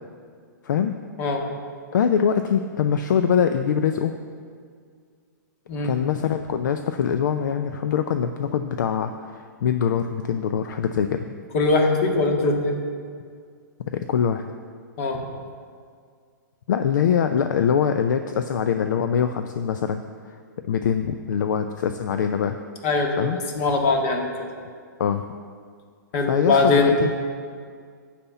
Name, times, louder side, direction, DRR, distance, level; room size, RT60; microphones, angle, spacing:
voice 1, 0.6-1.0 1.9-4.2 5.8-11.2 13.9-14.4 16.7-20.0 20.3-20.4 20.6-22.6 23.2-23.4 25.0-25.2 26.3-27.1, left 7 dB, 70° left, 8 dB, 0.5 m, -23 dB
voice 2, 11.5-12.8 15.0-15.2 22.8-24.5 26.1-26.9, left 3 dB, 45° left, 2 dB, 1.7 m, -21 dB
11.5 x 4.3 x 8.0 m, 2.1 s
hypercardioid pair, 125°, 10 cm